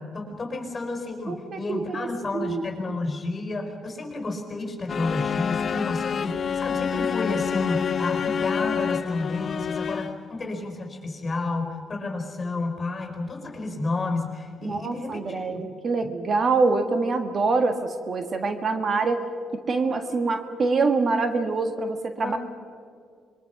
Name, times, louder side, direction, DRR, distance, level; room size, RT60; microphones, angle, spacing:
voice 1, 0.0-15.7 22.2-22.4, left 3 dB, 30° left, 5 dB, 4.9 m, -31 dB
voice 2, 1.3-2.1 2.3-2.6 14.6-19.2 19.5-22.4, right 3 dB, 45° right, 7 dB, 1.7 m, -25 dB
sound 1, 4.9-10.3, left 7 dB, 50° left, 0.5 m, -27 dB
26.0 x 22.0 x 6.0 m, 2.2 s
cardioid pair, 90°, 0 cm